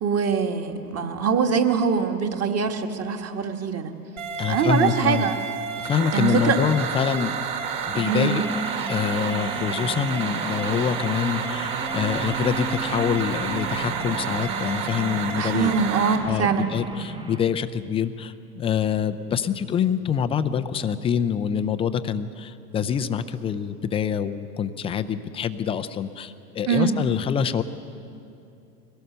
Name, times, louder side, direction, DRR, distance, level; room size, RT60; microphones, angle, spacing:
voice 1, 0.0-3.9 4.5-5.4 6.1-6.6 8.1-8.4 15.4-16.7 26.7-27.0, right 6 dB, 30° right, 5 dB, 1.7 m, -23 dB
sound 1, 4.2-16.2, right 6 dB, 60° right, 2.7 m, -30 dB
voice 2, 4.4-5.3 5.8-7.3 7.9-8.4 8.9-15.7 16.2-27.6, left 8 dB, 15° left, 10 dB, 0.4 m, -25 dB
sound 2, 7.9-17.4, right 3 dB, 10° right, 0.9 m, -34 dB
22.5 x 17.5 x 6.7 m, 2.7 s
hypercardioid pair, 100°, 48 cm